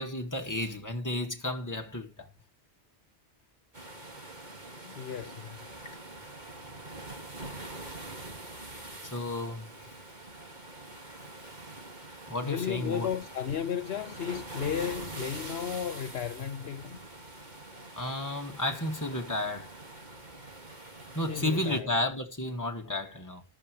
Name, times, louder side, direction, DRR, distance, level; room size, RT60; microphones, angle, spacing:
voice 1, 0.0-2.3 9.0-9.9 12.3-13.1 17.7-19.7 21.1-23.4, left 1 dB, 15° left, 2.1 m, -32 dB
sound 1, 3.7-21.8, right 2 dB, 45° right, 2.6 m, -44 dB
voice 2, 4.8-5.5 12.4-17.0 21.3-21.9, left 8 dB, 70° left, 1.0 m, -34 dB
14.0 x 10.5 x 3.2 m
omnidirectional pair, 1.1 m